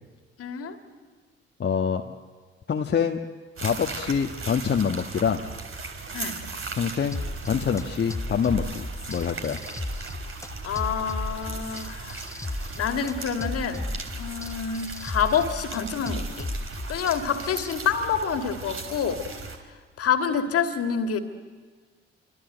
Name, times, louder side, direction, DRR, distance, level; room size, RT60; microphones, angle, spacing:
voice 1, 0.4-0.8 6.1-6.4 10.6-12.3 12.7-13.9 14.2-16.5 16.9-19.2 20.0-21.2, left 7 dB, 50° left, 7 dB, 2.6 m, -27 dB
voice 2, 1.6-2.2 2.7-3.2 3.6-5.4 6.7-9.6, left 7 dB, 35° left, 2 dB, 1.4 m, -26 dB
sound 1, 3.6-19.6, right 4 dB, 45° right, 4.1 m, -38 dB
sound 2, 7.1-17.7, left 1 dB, 10° left, 1.1 m, -35 dB
28.5 x 25.0 x 7.9 m, 1.5 s
figure-of-eight pair, 45°, 31 cm